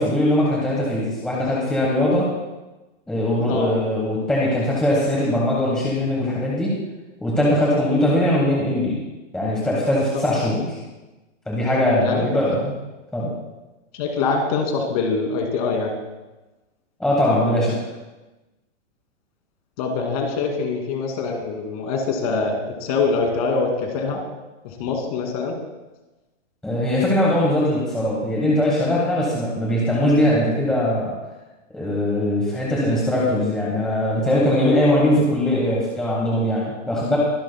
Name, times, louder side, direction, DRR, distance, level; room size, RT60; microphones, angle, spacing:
voice 1, 0.0-2.2 3.1-6.7 7.2-9.0 9.3-10.8 11.5-12.7 13.1-13.3 17.0-17.7 26.6-31.1 31.7-37.2, left 1 dB, ahead, -6 dB, 1.1 m, -21 dB
voice 2, 10.1-10.5 12.0-12.3 13.9-15.9 19.8-24.2 24.6-25.5, left 4 dB, 30° left, 2 dB, 2.4 m, -24 dB
23.0 x 11.5 x 2.2 m, 1.1 s
hypercardioid pair, 175°, 38 cm